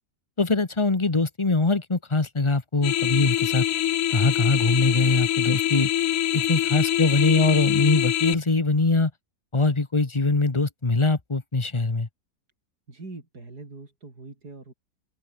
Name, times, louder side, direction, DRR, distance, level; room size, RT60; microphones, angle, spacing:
voice 1, 0.4-3.6 4.1-5.9 6.3-9.1 9.5-12.1, left 3 dB, 20° left, 1.4 m, -22 dB
sound 1, 2.8-8.3, left 12 dB, 65° left, 0.9 m, -24 dB
voice 2, 12.9-14.7, right 3 dB, 90° right, 5.2 m, -42 dB
open air
omnidirectional pair, 1.6 m